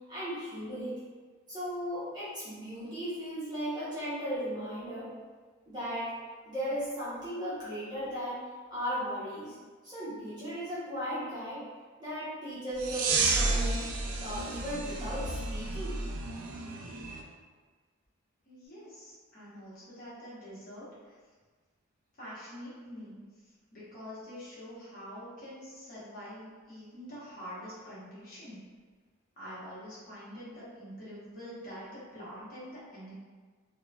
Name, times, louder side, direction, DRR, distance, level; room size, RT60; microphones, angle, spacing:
voice 1, 0.1-1.0 1.5-5.1 5.7-6.1 6.5-8.4 8.7-9.6 9.8-11.6 12.0-13.8 14.2-16.0, equal, 20° right, -11 dB, 0.6 m, -36 dB
sound 1, 12.8-17.2, right 3 dB, 80° right, 0.3 m, -31 dB
voice 2, 18.5-21.2 22.1-23.2 23.7-28.6 29.4-33.1, equal, 40° left, -10 dB, 1.0 m, -45 dB
3.0 x 2.1 x 2.3 m, 1.5 s
head